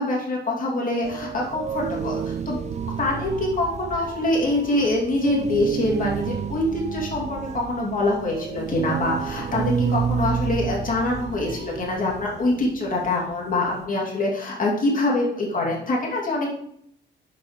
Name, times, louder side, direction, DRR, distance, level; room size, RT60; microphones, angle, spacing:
voice 1, 0.0-2.6 3.0-16.5, left 2 dB, 45° left, -3 dB, 2.8 m, -25 dB
sound 1, 1.0-13.9, right 7 dB, 35° right, 0.5 m, -30 dB
11.5 x 5.5 x 3.3 m, 0.72 s
cardioid pair, 90°, 20 cm